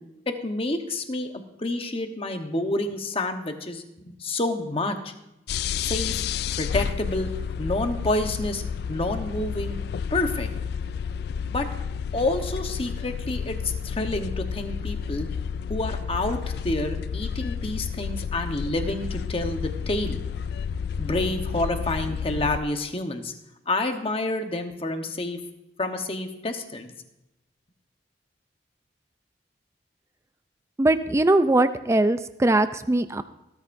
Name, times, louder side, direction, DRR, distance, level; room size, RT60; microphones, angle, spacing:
voice 1, 0.3-1.3 1.6-5.1 5.8-6.2 6.5-7.3 7.6-8.6 8.9-9.8 10.1-10.5 11.5-11.7 12.1-15.3 15.7-20.2 21.0-23.3 23.7-25.4 25.8-26.9, left 2 dB, 35° left, 6 dB, 1.0 m, -28 dB
sound 1, 5.5-22.6, left 7 dB, 60° left, 0.3 m, -31 dB
voice 2, 30.8-33.2, right 2 dB, 15° right, 11 dB, 0.4 m, -21 dB
18.5 x 13.0 x 2.6 m, 0.92 s
head